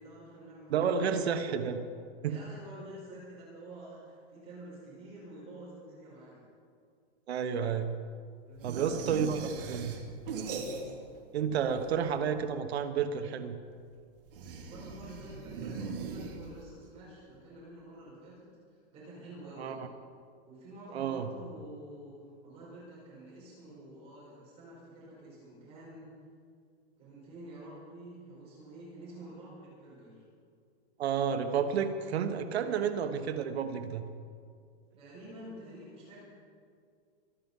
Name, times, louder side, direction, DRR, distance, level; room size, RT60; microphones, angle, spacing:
voice 1, 0.0-1.0 2.2-6.4 8.4-9.7 14.6-19.8 20.4-26.1 27.0-30.2 35.0-36.2, right 1 dB, 20° right, -7 dB, 4.9 m, -49 dB
voice 2, 0.7-1.8 2.2-2.3 7.3-7.9 8.6-10.0 11.3-13.6 19.6-19.9 20.9-21.3 31.0-34.0, right 7 dB, 70° right, 8 dB, 1.3 m, -31 dB
sound 1, 8.6-11.2 11.4-12.3 14.3-16.8, right 4 dB, 55° right, 3.0 m, -40 dB
24.0 x 9.4 x 5.5 m, 2.2 s
supercardioid pair, 180°, 33 cm